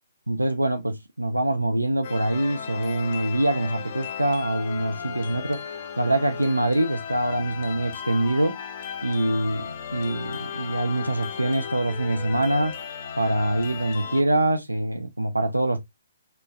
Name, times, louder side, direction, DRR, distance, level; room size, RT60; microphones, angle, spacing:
voice 1, 0.3-5.6 6.0-8.6 9.0-12.8 13.2-15.9, right 1 dB, 90° right, 0.3 m, -24 dB
sound 1, 2.0-14.2, left 7 dB, 40° left, 0.5 m, -36 dB
3.8 x 2.1 x 2.3 m
figure-of-eight pair, 130°, 0 cm